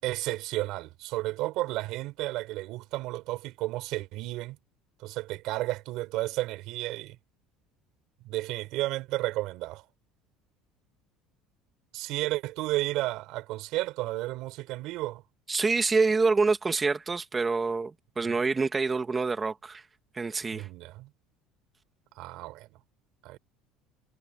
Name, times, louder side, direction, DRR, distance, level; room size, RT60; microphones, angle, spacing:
voice 1, 0.0-4.6 5.0-7.2 8.2-9.8 11.9-15.2 18.3-18.4 20.5-21.1 22.2-22.7 23.2-23.4, right 18 dB, 55° right, 4.2 m, -32 dB
voice 2, 15.5-19.8 20.1-20.7, right 4 dB, 15° right, 1.9 m, -26 dB
cardioid pair, 165°, 0 cm